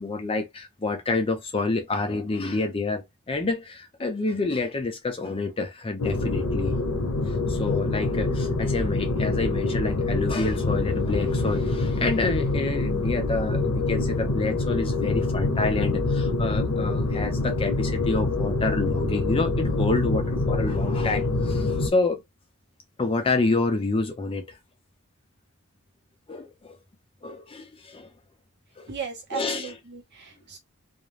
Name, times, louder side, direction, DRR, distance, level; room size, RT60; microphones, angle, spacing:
voice 1, 0.0-6.8 7.3-22.2 23.0-24.6 26.3-26.8 27.2-28.1 28.8-28.9 29.3-29.7, left 3 dB, 25° left, 0.4 m, -28 dB
sound 1, 6.0-21.9, left 2 dB, 85° left, 0.7 m, -25 dB
voice 2, 28.9-30.6, right 6 dB, 50° right, 1.0 m, -36 dB
2.4 x 2.0 x 3.1 m
head